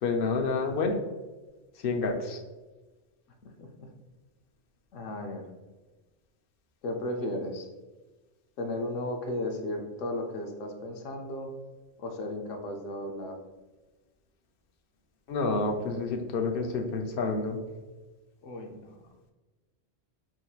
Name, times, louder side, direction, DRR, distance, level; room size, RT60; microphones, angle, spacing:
voice 1, 0.0-0.9 1.8-2.4 15.3-17.6, left 3 dB, 60° left, 4 dB, 0.6 m, -28 dB
voice 2, 3.4-3.9 4.9-5.4 6.8-7.7 8.6-11.5 12.0-13.4 18.4-19.0, left 1 dB, 85° left, 3 dB, 1.0 m, -35 dB
6.0 x 2.7 x 2.3 m, 1.2 s
omnidirectional pair, 1.3 m